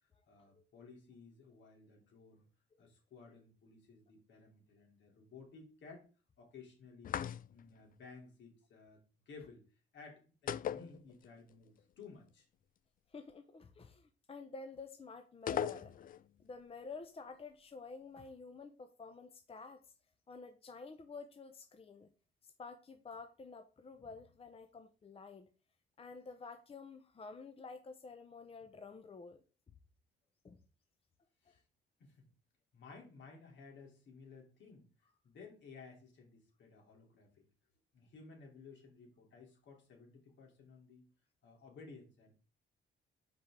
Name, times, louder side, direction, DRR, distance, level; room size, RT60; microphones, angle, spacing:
voice 1, 0.3-2.5 2.8-6.1 6.4-7.1 7.5-9.0 9.3-9.6 9.9-12.5 31.4-31.6 32.0-32.3 32.7-34.9 35.2-37.4 37.9-41.1 41.4-42.3, left 4 dB, 70° left, 3.0 m, -56 dB
sound 1, 7.0-7.8 10.5-11.5 11.8-11.9 15.5-16.3, left 9 dB, 45° left, 0.4 m, -38 dB
voice 2, 13.1-16.0 16.4-19.9 20.3-22.1 22.4-25.5 26.0-29.4 30.4-30.6 31.5-31.6, left 4 dB, 30° left, 0.8 m, -50 dB
5.9 x 5.1 x 3.6 m
cardioid pair, 90°, 20 cm